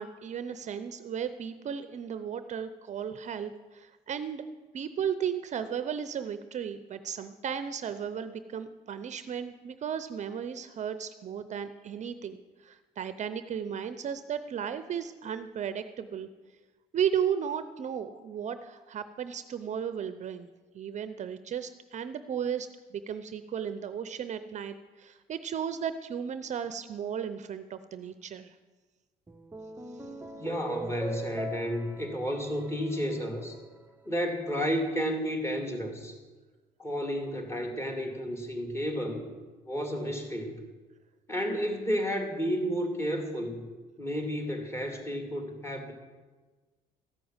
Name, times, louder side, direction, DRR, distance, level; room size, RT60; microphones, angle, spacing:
voice 1, 0.0-4.4 4.7-16.3 16.9-20.5 20.7-28.6, right 8 dB, 45° right, 11 dB, 0.6 m, -35 dB
sound 1, 29.3-33.8, right 2 dB, 10° right, 0.8 m, -41 dB
voice 2, 30.3-33.6 34.1-36.2 36.8-39.2 39.6-40.5 41.3-43.7 44.0-45.9, equal, 15° left, 3 dB, 2.3 m, -32 dB
14.0 x 6.1 x 8.8 m, 1.3 s
cardioid pair, 110°, 17 cm